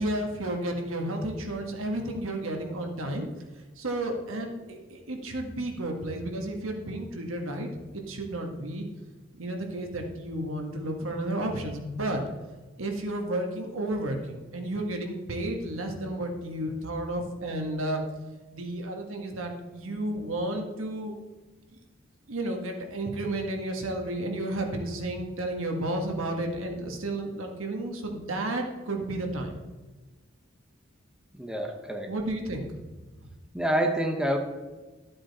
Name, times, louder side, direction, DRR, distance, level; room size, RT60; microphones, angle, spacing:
voice 1, 0.0-3.3 3.8-7.7 7.9-8.9 9.4-12.2 12.8-18.0 18.5-21.1 22.3-29.5 32.1-32.7, right 1 dB, 90° right, 3 dB, 1.6 m, -32 dB
voice 2, 31.3-32.1 33.5-34.4, right 1 dB, 5° right, 3 dB, 1.0 m, -27 dB
13.0 x 7.6 x 4.2 m, 1.2 s
head